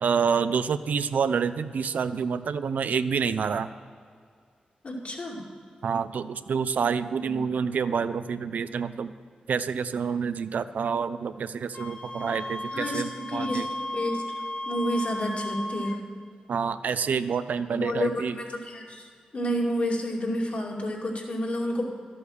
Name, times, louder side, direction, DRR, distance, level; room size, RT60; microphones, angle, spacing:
voice 1, 0.0-3.7 5.8-9.1 9.5-13.7 16.5-18.4, right 6 dB, 80° right, 12 dB, 0.5 m, -28 dB
voice 2, 4.8-5.5 7.2-7.5 12.7-14.2 14.7-16.0 17.7-21.9, equal, 60° left, -2 dB, 2.5 m, -30 dB
Wind instrument woodwind instrument, 11.7-16.0, left 1 dB, 40° left, 1.2 m, -35 dB
12.5 x 8.6 x 6.5 m, 2.1 s
cardioid pair, 55°, 3 cm